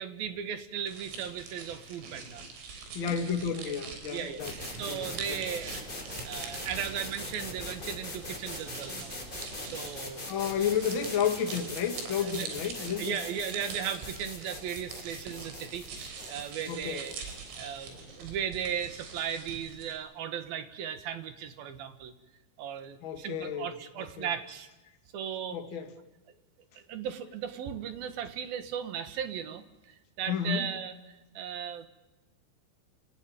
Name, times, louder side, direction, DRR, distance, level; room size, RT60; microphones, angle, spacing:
voice 1, 0.0-2.4 3.0-3.1 4.1-4.4 4.8-9.2 9.7-10.2 12.2-12.5 13.0-15.9 16.3-17.1 17.6-22.1 22.6-24.7 25.1-25.6 26.7-31.9, right 8 dB, 60° right, 10 dB, 2.8 m, -36 dB
sound 1, 0.9-19.9, right 5 dB, 90° right, 6.3 m, -44 dB
voice 2, 2.9-4.5 4.8-5.4 10.3-13.2 16.7-17.0 23.0-24.3 25.5-25.9 30.3-30.7, left 7 dB, 45° left, 5 dB, 1.6 m, -32 dB
sound 2, 4.4-18.1, left 2 dB, 10° left, 4.9 m, -42 dB
29.0 x 17.5 x 8.9 m, 1.1 s
omnidirectional pair, 5.6 m